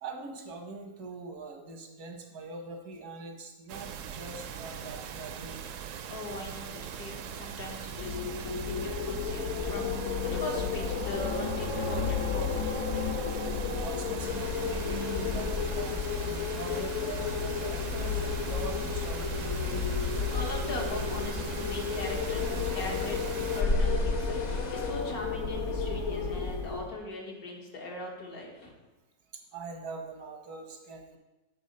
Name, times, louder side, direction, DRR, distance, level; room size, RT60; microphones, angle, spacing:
voice 1, 0.0-5.7 13.7-16.1 16.5-19.8 26.1-26.2 29.5-31.2, right 3 dB, 85° right, 3 dB, 1.6 m, -43 dB
sound 1, 3.7-23.6, right 8 dB, 70° right, 0.8 m, -41 dB
voice 2, 6.1-12.6 20.0-28.7, left 2 dB, 75° left, 0 dB, 2.0 m, -40 dB
Wind, 7.9-26.9, left 5 dB, 55° left, 1.2 m, -32 dB
sound 2, 14.2-25.2, left 1 dB, 35° left, 0.7 m, -43 dB
8.8 x 4.5 x 5.3 m, 1.1 s
omnidirectional pair, 1.6 m